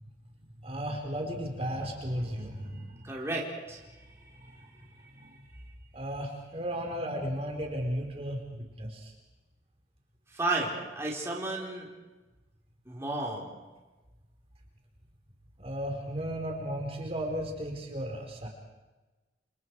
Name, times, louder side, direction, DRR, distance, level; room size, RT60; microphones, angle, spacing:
voice 1, 0.6-3.1 4.4-4.7 5.1-5.4 5.9-9.1 15.6-18.5, equal, 35° right, 1 dB, 4.3 m, -35 dB
voice 2, 3.0-3.8 10.3-11.9 12.9-13.5, right 2 dB, 15° right, -3 dB, 4.2 m, -32 dB
29.0 x 28.0 x 4.8 m, 1.2 s
head